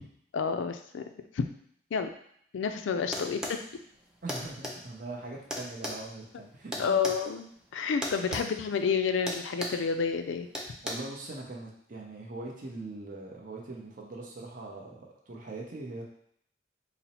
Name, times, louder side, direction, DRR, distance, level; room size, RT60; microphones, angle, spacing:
voice 1, 0.3-1.0 1.3-1.4 1.9-2.1 2.5-3.6 6.8-10.5, left 6 dB, 90° left, 8 dB, 0.4 m, -29 dB
sound 1, 3.1-3.6 4.3-4.8 5.5-7.2 8.0-8.5 8.7-8.9 9.3-9.8 10.5-10.9, equal, 5° right, 0.4 m, -35 dB
voice 2, 4.2-7.0 8.3-8.4 10.8-16.0, right 2 dB, 45° right, -1 dB, 0.7 m, -41 dB
4.0 x 2.0 x 4.1 m, 0.67 s
head